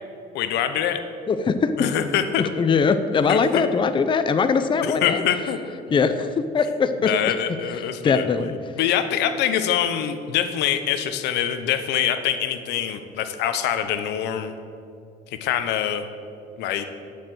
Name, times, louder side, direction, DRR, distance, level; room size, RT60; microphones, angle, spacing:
voice 1, 0.3-1.0 1.8-2.5 3.3-3.7 4.8-5.6 7.0-8.3 8.8-14.5 15.3-16.1 16.6-16.8, left 10 dB, 85° left, 9 dB, 0.9 m, -24 dB
voice 2, 1.3-1.9 2.6-5.2 5.9-7.1 8.0-8.5, left 5 dB, 30° left, 10 dB, 0.6 m, -21 dB
10.5 x 6.7 x 7.7 m, 2.5 s
cardioid pair, 110°, 17 cm